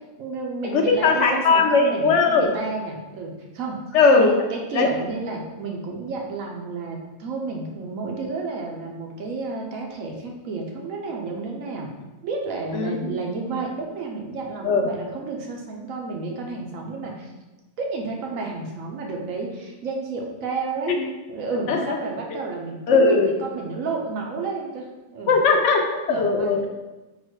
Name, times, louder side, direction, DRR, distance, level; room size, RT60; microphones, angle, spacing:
voice 1, 0.2-3.8 4.2-11.9 12.2-17.3 17.8-20.9 21.3-24.9 25.1-25.3 26.1-26.5, right 3 dB, 70° right, 1 dB, 1.0 m, -31 dB
voice 2, 0.7-2.5 3.9-4.3 4.7-4.9 12.7-13.1 14.6-14.9 20.9-21.0 21.7-21.8 22.9-23.3 25.3-26.7, left 4 dB, 65° left, 2 dB, 0.8 m, -18 dB
3.9 x 2.2 x 4.5 m, 1.1 s
omnidirectional pair, 1.5 m